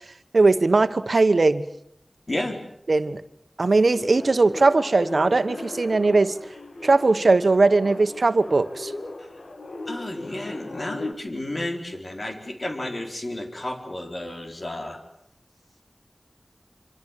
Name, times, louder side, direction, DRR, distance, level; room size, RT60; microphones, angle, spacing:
voice 1, 0.3-1.6 2.9-3.2 3.6-6.3 6.8-8.9, right 3 dB, 80° right, 11 dB, 1.2 m, -19 dB
voice 2, 2.3-2.6 9.9-15.0, left 1 dB, 55° left, 4 dB, 4.4 m, -32 dB
Teleporter Sound, 3.9-11.1, left 2 dB, 80° left, 2.0 m, -37 dB
25.5 x 25.0 x 7.5 m, 0.70 s
wide cardioid pair, 50°, 0 cm